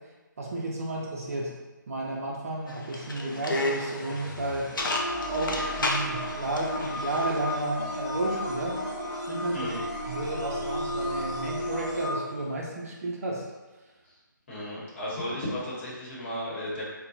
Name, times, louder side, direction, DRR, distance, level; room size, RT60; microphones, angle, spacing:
voice 1, 0.4-1.5 1.9-4.7 5.3-8.8 9.3-9.7 10.1-13.4, right 2 dB, 45° right, -2 dB, 0.6 m, -32 dB
sound 1, 2.7-7.6, left 2 dB, 80° left, 0.5 m, -33 dB
sound 2, 3.3-12.4, right 4 dB, 20° right, 0.8 m, -44 dB
sound 3, 4.8-12.2, left 1 dB, 15° left, 0.4 m, -33 dB
voice 2, 9.5-9.8 14.1-14.2 14.5-16.8, left 1 dB, 35° left, -7 dB, 1.1 m, -34 dB
3.6 x 2.2 x 2.6 m, 1.2 s
figure-of-eight pair, 160°, 11 cm